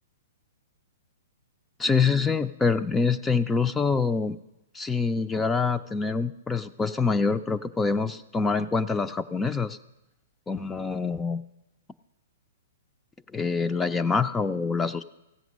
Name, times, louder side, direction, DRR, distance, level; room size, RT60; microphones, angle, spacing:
voice 1, 1.8-4.4 4.7-9.8 10.5-11.4 13.3-15.0, left 4 dB, 10° left, 11 dB, 0.4 m, -25 dB
15.5 x 7.8 x 6.2 m, 0.94 s
hypercardioid pair, 140°, 0 cm